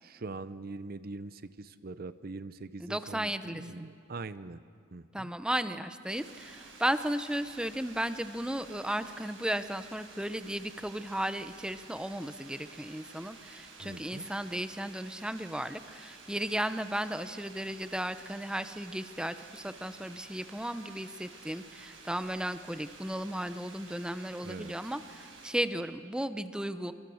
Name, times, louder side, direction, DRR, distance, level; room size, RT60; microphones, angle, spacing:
voice 1, 0.0-4.6 4.9-5.3 13.8-14.3 24.4-24.7, right 3 dB, 50° right, 14 dB, 0.7 m, -42 dB
voice 2, 2.8-3.9 5.1-26.9, right 1 dB, 5° right, 11 dB, 0.8 m, -35 dB
sound 1, 6.1-25.5, right 4 dB, 90° right, 5.7 m, -52 dB
27.0 x 24.0 x 6.4 m, 2.5 s
head